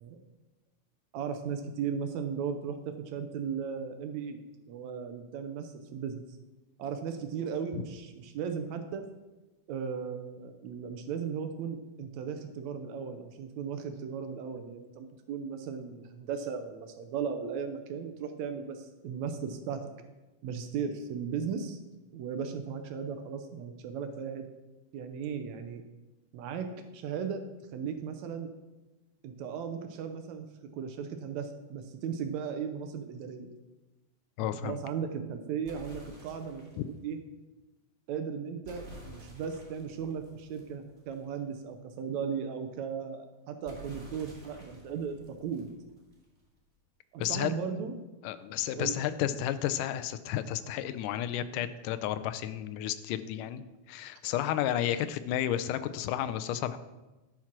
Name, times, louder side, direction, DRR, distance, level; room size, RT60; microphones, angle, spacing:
voice 1, 1.1-4.4 4.7-6.2 6.8-9.0 9.7-19.9 20.4-21.8 22.1-24.5 24.9-25.8 26.3-27.4 27.7-28.5 29.2-30.5 30.7-33.5 34.6-37.2 38.1-45.7 47.1-47.9 48.7-49.4, right 6 dB, 75° right, 7 dB, 1.8 m, -36 dB
voice 2, 34.4-34.8 36.8-36.9 47.2-47.5 48.2-53.6 53.9-56.8, left 11 dB, 80° left, 12 dB, 2.1 m, -32 dB
sound 1, 35.6-36.9 38.6-41.4 43.6-46.4, right 1 dB, 20° right, 2.3 m, -50 dB
11.0 x 5.9 x 6.0 m, 1.1 s
omnidirectional pair, 3.8 m